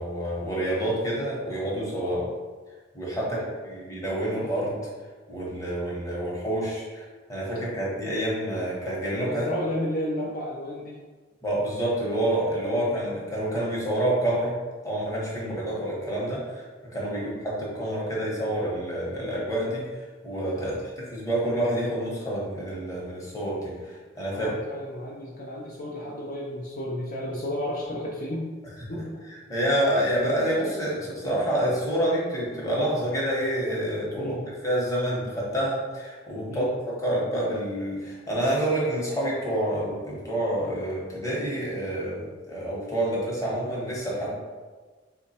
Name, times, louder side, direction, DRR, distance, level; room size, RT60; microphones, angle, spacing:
voice 1, 0.0-2.2 2.9-3.4 3.6-4.8 5.3-7.0 7.3-9.5 11.4-14.5 14.8-16.6 16.9-19.9 20.2-24.5 29.5-34.4 34.6-36.7 37.0-44.4, right 1 dB, 15° left, -6 dB, 0.8 m, -28 dB
voice 2, 2.0-2.3 3.2-3.4 9.2-11.0 12.9-13.0 15.4-15.6 17.1-17.3 20.6-20.7 24.3-28.5 28.9-29.2 34.2-34.4 36.5-36.7, left 1 dB, 45° left, -4 dB, 0.4 m, -33 dB
3.3 x 2.1 x 4.1 m, 1.4 s
head